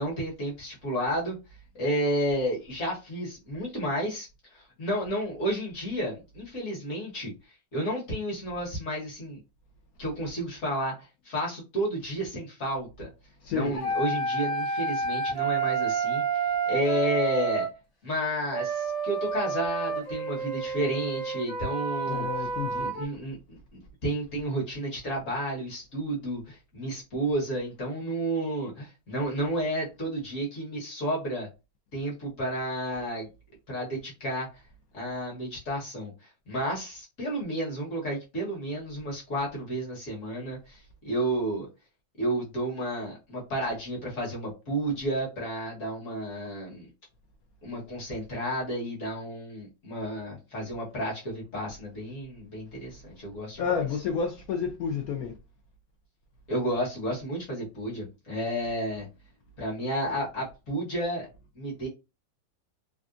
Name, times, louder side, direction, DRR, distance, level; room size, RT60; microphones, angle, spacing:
voice 1, 0.0-1.4 1.8-4.3 4.5-7.3 7.7-9.4 10.0-13.1 13.5-17.7 18.0-22.3 22.7-31.5 31.9-33.3 33.7-34.5 34.9-36.1 36.5-40.8 41.0-41.7 42.2-46.9 47.6-53.6 56.5-59.1 59.6-61.3 61.6-61.9, right 1 dB, 50° left, 1.6 m, -31 dB
voice 2, 13.4-13.8 22.1-22.9 53.6-55.3, left 6 dB, 70° left, 0.9 m, -30 dB
sound 1, 13.8-17.7 18.5-23.1, right 4 dB, 35° left, 1.2 m, -29 dB
3.4 x 2.5 x 2.5 m
omnidirectional pair, 1.9 m